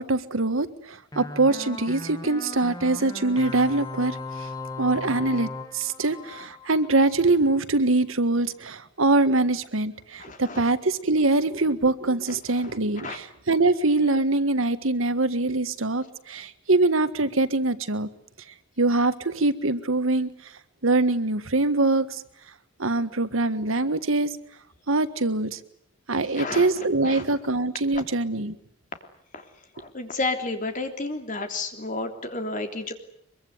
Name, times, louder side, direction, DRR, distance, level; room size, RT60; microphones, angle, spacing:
voice 1, 0.0-4.5 4.8-18.1 18.8-20.3 20.8-22.2 22.8-24.3 24.9-25.6 26.1-28.6, right 2 dB, 85° right, 12 dB, 1.6 m, -23 dB
sound 1, 1.1-7.2, left 2 dB, 20° left, 2.3 m, -37 dB
voice 2, 10.2-10.6 12.5-13.2 26.3-27.2 27.9-28.0 29.3-29.4 29.7-32.9, left 3 dB, 40° left, 5 dB, 3.4 m, -32 dB
24.0 x 23.5 x 9.5 m, 0.65 s
head